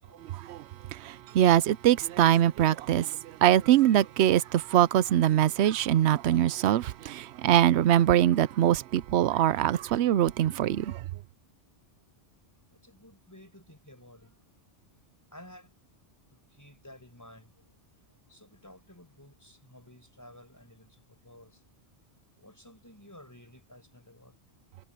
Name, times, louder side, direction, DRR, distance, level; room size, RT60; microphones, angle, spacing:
voice 1, 0.2-11.0, right 12 dB, 80° right, 0.9 m, -23 dB
voice 2, 12.5-14.5 15.3-15.7 16.3-17.6 18.3-21.6 22.4-24.3, left 1 dB, 15° left, 5.4 m, -53 dB
omnidirectional pair, 1.1 m